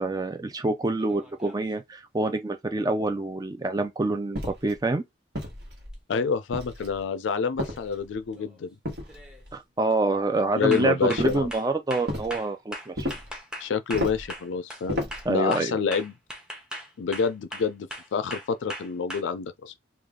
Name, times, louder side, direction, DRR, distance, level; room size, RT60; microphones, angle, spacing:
voice 1, 0.0-5.0 9.5-13.1 15.2-15.8, right 2 dB, 20° right, 0.5 m, -26 dB
sound 1, 1.0-1.7 5.9-6.0 7.5-7.8 8.3-8.6 9.1-9.4 9.9-10.1 10.7-14.9 15.1-19.2, equal, 5° right, 0.9 m, -39 dB
sound 2, 4.3-4.8 5.3-6.0 6.5-7.0 7.6-8.2 8.8-9.5 11.2-11.5 12.1-12.3 13.0-13.4 13.9-14.3 14.9-15.3, left 1 dB, 60° right, 1.3 m, -33 dB
voice 2, 6.1-8.8 10.6-11.5 13.6-16.1 17.0-19.7, left 5 dB, 90° left, 0.4 m, -28 dB
3.3 x 2.4 x 3.6 m
head